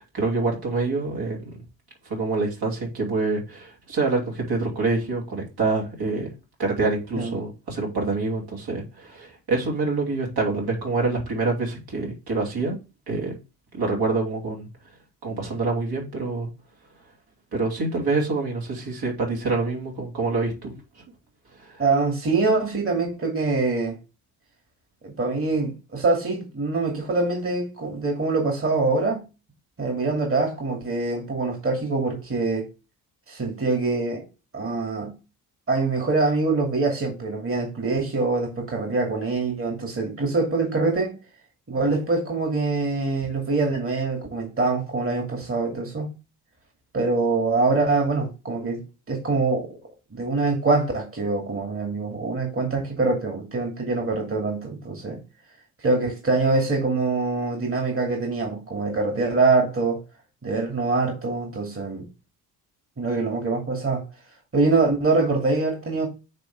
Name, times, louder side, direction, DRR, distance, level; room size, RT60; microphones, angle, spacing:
voice 1, 0.0-1.5 2.0-6.3 6.6-12.8 13.1-13.4 13.7-14.7 15.2-16.5 17.5-20.7 21.6-21.8, right 3 dB, 55° right, 3.0 m, -26 dB
voice 2, 21.8-24.0 25.0-29.2 29.8-32.7 33.3-34.3 34.5-35.1 35.7-41.2 41.7-46.1 46.9-49.7 50.1-55.2 55.8-60.0 60.4-62.1 63.0-64.0 64.5-66.1, right 3 dB, 30° right, 2.5 m, -24 dB
9.1 x 3.3 x 3.5 m
hypercardioid pair, 50°, 45 cm